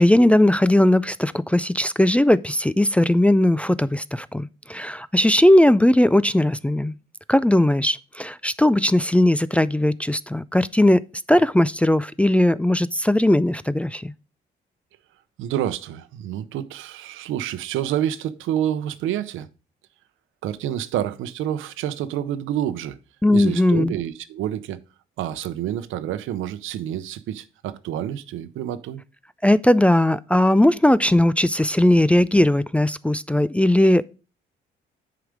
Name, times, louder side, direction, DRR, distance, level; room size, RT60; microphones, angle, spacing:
voice 1, 0.0-6.9 7.3-11.0 11.3-14.1 23.2-23.9 29.4-34.0, left 1 dB, 5° left, 0.3 m, -18 dB
voice 2, 15.4-19.5 20.4-23.0 23.3-24.8 25.2-29.0, right 11 dB, 85° right, 0.7 m, -28 dB
7.9 x 4.9 x 5.0 m
cardioid pair, 90°, 20 cm